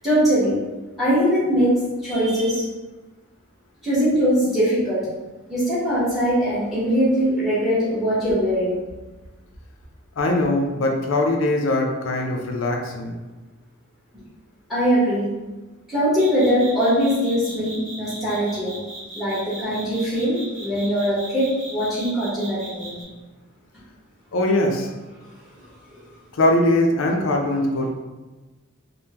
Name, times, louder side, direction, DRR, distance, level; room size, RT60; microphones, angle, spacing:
voice 1, 0.0-0.6 1.0-1.7 2.0-2.6 3.8-5.1 5.5-8.8 14.7-15.3 15.9-18.8 19.1-23.0 25.9-26.0, equal, ahead, -10 dB, 1.0 m, -21 dB
voice 2, 10.2-13.1 18.0-18.3 24.3-24.9 26.3-27.9, left 1 dB, 65° left, 1 dB, 0.4 m, -21 dB
sound 1, 16.2-23.0, right 2 dB, 35° right, 1.5 m, -38 dB
3.5 x 2.1 x 2.8 m, 1.2 s
head